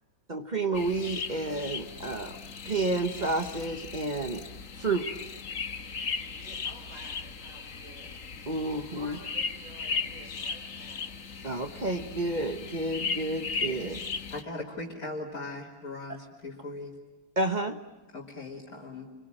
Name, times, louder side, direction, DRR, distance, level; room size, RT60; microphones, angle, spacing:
voice 1, 0.3-2.4 2.6-4.4 4.8-5.1 8.5-9.2 11.4-14.0 17.4-17.8, right 2 dB, 35° right, 7 dB, 1.2 m, -30 dB
sound 1, 0.7-14.4, left 5 dB, 60° left, 1.7 m, -37 dB
voice 2, 4.8-5.1 6.3-8.1 8.9-11.4, right 2 dB, 65° right, -1 dB, 4.7 m, -52 dB
voice 3, 14.3-17.0 18.1-19.1, left 2 dB, 75° left, -5 dB, 3.6 m, -39 dB
28.5 x 23.0 x 8.9 m, 1.2 s
omnidirectional pair, 1.6 m